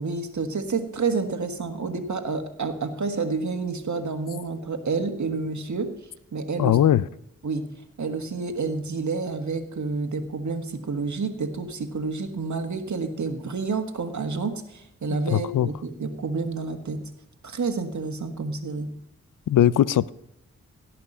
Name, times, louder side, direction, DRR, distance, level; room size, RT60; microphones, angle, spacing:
voice 1, 0.0-5.9 6.3-6.8 7.4-7.7 8.0-17.0 17.4-18.9, right 4 dB, 65° right, 7 dB, 1.6 m, -29 dB
voice 2, 6.6-7.1 15.3-15.7 19.5-20.1, left 11 dB, 75° left, 19 dB, 0.5 m, -19 dB
17.0 x 5.9 x 5.5 m, 0.82 s
cardioid pair, 40°, 32 cm